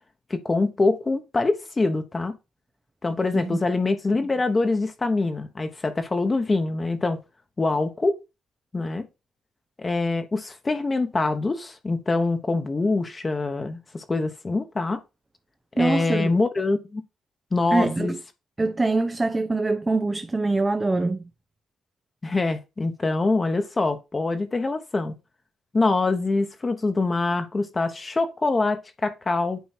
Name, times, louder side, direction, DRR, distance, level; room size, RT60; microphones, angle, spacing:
voice 1, 0.3-2.4 3.0-7.2 7.6-8.2 8.7-9.1 9.8-15.0 15.8-17.0 17.5-18.1 22.2-25.1 25.7-29.6, left 3 dB, 25° left, 1.1 m, -24 dB
voice 2, 15.8-16.3 17.7-18.2 18.6-21.2, right 3 dB, 20° right, 0.6 m, -24 dB
9.3 x 3.1 x 4.3 m
cardioid pair, 90°, 0 cm